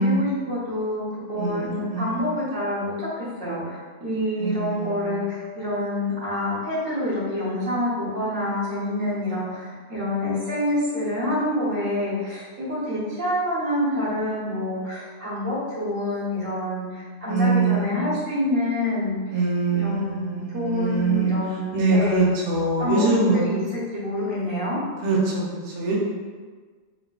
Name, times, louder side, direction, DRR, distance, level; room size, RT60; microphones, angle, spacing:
voice 1, 0.0-19.2 19.7-22.3 22.8-23.0 23.3-24.8, left 1 dB, 70° right, -9 dB, 1.5 m, -27 dB
voice 2, 1.4-2.2 4.4-5.2 17.3-18.1 19.3-21.4 21.7-23.5 25.0-25.9, right 3 dB, 45° right, -6 dB, 0.6 m, -23 dB
4.2 x 2.1 x 2.3 m, 1.5 s
omnidirectional pair, 1.4 m